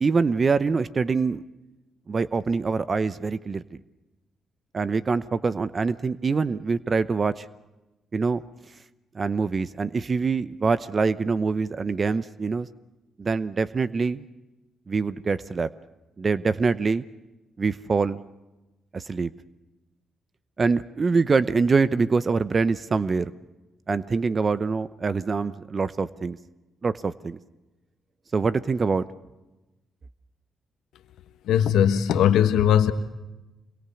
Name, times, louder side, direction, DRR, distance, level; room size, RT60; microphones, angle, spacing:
voice 1, 0.0-1.4 2.1-3.8 4.7-7.5 8.1-8.4 9.1-12.7 13.2-14.2 14.9-15.7 16.2-17.0 17.6-18.2 18.9-19.3 20.6-23.3 23.9-26.4 26.8-27.4 28.3-29.0, right 4 dB, 40° right, 15 dB, 0.8 m, -24 dB
voice 2, 31.5-32.9, left 9 dB, 85° left, 9 dB, 1.3 m, -19 dB
26.5 x 22.5 x 7.1 m, 1.1 s
supercardioid pair, 60°, 0 cm